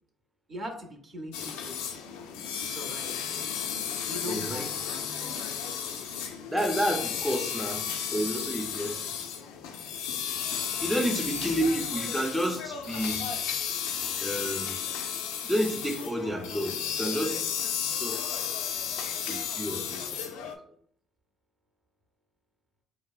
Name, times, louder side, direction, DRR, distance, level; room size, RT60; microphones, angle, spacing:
voice 1, 0.5-1.8 2.5-3.2 4.1-5.0, equal, 50° right, 3 dB, 0.7 m, -40 dB
sound 1, 1.3-20.6, left 8 dB, 85° left, 0.3 m, -33 dB
voice 2, 4.3-4.6 6.5-9.1 10.8-13.2 14.2-14.8 15.4-17.4 17.8-18.2 19.3-20.0, equal, 5° right, 2 dB, 0.5 m, -30 dB
4.2 x 2.0 x 2.3 m, 0.63 s
supercardioid pair, 65°, 0 cm